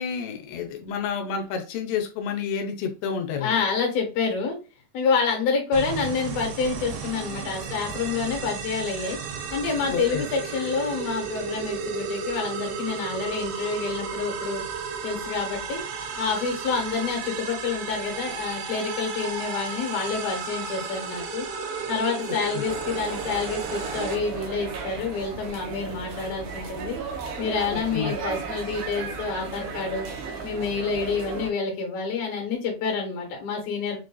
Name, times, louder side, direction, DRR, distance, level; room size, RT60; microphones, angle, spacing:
voice 1, 0.0-3.5 9.8-10.2 22.5-22.6 27.7-28.1, left 6 dB, 90° left, 4 dB, 2.9 m, -30 dB
voice 2, 3.4-4.6 4.9-9.2 9.5-14.6 15.0-15.8 16.2-21.5 21.9-27.0 27.4-30.1 30.4-34.0, left 5 dB, 65° left, 1 dB, 2.8 m, -28 dB
sound 1, 5.7-24.2, right 5 dB, 85° right, 2.9 m, -33 dB
sound 2, 22.6-31.5, right 5 dB, 70° right, 2.1 m, -35 dB
6.8 x 2.5 x 2.2 m, 0.32 s
omnidirectional pair, 4.8 m